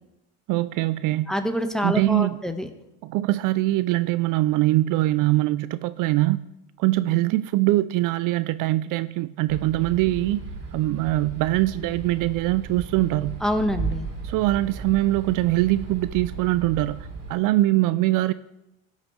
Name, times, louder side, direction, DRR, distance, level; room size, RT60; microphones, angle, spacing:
voice 1, 0.5-1.3 1.8-2.4 3.0-6.5 6.8-10.4 10.7-13.4 14.2-18.3, right 17 dB, 65° right, 15 dB, 0.4 m, -23 dB
voice 2, 1.3-2.7 13.4-14.1, equal, ahead, 7 dB, 1.2 m, -26 dB
sound 1, 9.5-17.3, right 4 dB, 45° right, 3.3 m, -35 dB
16.0 x 6.4 x 3.2 m, 0.92 s
supercardioid pair, 75°, 35 cm